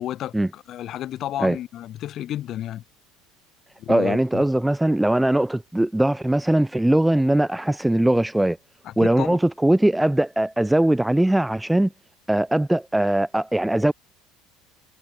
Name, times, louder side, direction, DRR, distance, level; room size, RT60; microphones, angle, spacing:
voice 1, 0.0-2.8 3.8-4.4 8.8-9.4, left 12 dB, 45° left, 1.0 m, -31 dB
voice 2, 3.9-8.6 9.0-11.9 12.3-13.9, right 1 dB, 5° right, 0.3 m, -20 dB
figure-of-eight pair, 65°, 0 cm